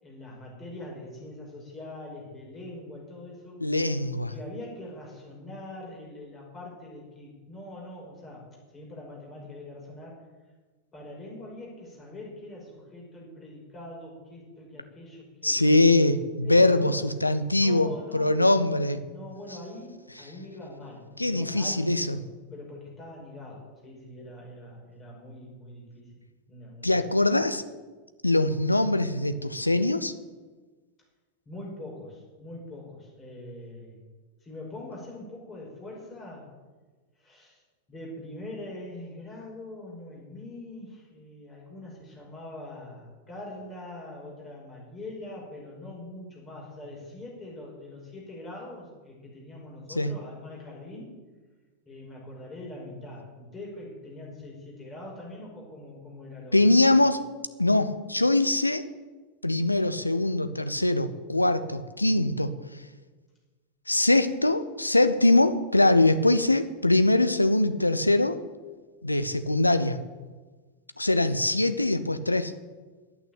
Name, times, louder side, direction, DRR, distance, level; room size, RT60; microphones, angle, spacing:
voice 1, 0.0-3.6 4.3-8.5 8.7-10.3 10.9-15.9 16.4-17.1 17.4-21.9 22.5-26.1 26.5-27.0 31.5-34.0 34.4-36.5 37.2-37.6 37.9-51.1 51.9-56.8, left 1 dB, 20° left, -3 dB, 5.7 m, -43 dB
voice 2, 3.6-4.3 15.4-19.0 21.2-22.2 26.8-27.6 28.2-30.1 49.9-50.1 56.5-57.3 57.6-58.9 59.4-62.5 63.9-68.4 69.0-70.0 71.0-72.5, left 2 dB, 85° left, 11 dB, 0.8 m, -22 dB
11.0 x 9.0 x 8.8 m, 1.3 s
figure-of-eight pair, 90°, 0 cm